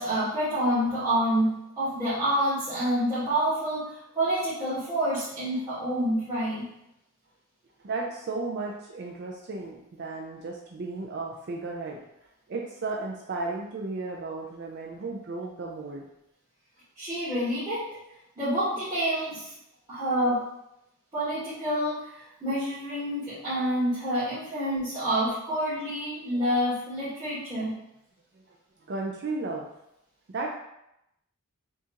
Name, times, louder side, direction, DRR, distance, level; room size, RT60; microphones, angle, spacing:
voice 1, 0.0-6.6 17.0-17.9 18.4-19.5 19.9-20.4 21.1-27.7, equal, 20° right, -14 dB, 1.5 m, -28 dB
voice 2, 7.8-12.0 12.5-16.0 27.6-27.7 28.9-29.7 30.3-30.5, right 3 dB, 50° right, 0 dB, 0.4 m, -34 dB
6.9 x 2.4 x 2.9 m, 0.84 s
head